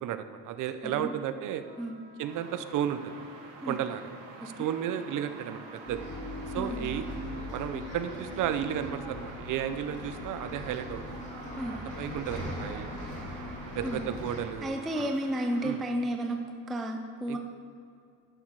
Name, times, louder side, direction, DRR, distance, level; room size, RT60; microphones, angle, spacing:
voice 1, 0.0-1.6 2.2-3.1 3.7-4.1 4.4-5.6 5.9-6.0 6.5-7.1 7.5-11.0 12.0-12.9 13.7-15.1 15.6-15.8 17.3-17.4, right 10 dB, 45° right, 10 dB, 0.7 m, -33 dB
sound 1, 1.6-7.0, right 2 dB, 30° right, 3.1 m, -56 dB
sound 2, 2.3-15.8, right 3 dB, 80° right, 2.8 m, -48 dB
Bus, 5.8-14.4, left 1 dB, 15° left, 2.8 m, -40 dB
voice 2, 6.5-6.9 11.6-11.9 13.1-13.4 13.8-14.0 14.6-16.4 16.7-17.4, equal, ahead, 3 dB, 0.3 m, -32 dB
11.5 x 10.5 x 4.7 m, 2.5 s
cardioid pair, 155°, 42 cm